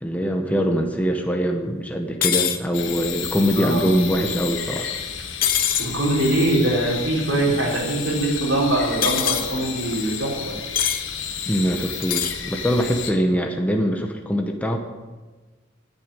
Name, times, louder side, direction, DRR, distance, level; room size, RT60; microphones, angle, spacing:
voice 1, 0.0-4.9 11.5-14.8, equal, 10° left, 3 dB, 1.0 m, -23 dB
sound 1, 2.2-2.6 5.4-5.9 9.0-9.5 10.8-11.0 12.0-12.4, left 9 dB, 45° left, 0.9 m, -22 dB
sound 2, 2.7-13.1, left 7 dB, 70° left, 1.3 m, -32 dB
voice 2, 3.5-3.9 5.8-10.6, right 1 dB, 90° right, -4 dB, 4.9 m, -22 dB
10.0 x 8.7 x 9.1 m, 1.3 s
head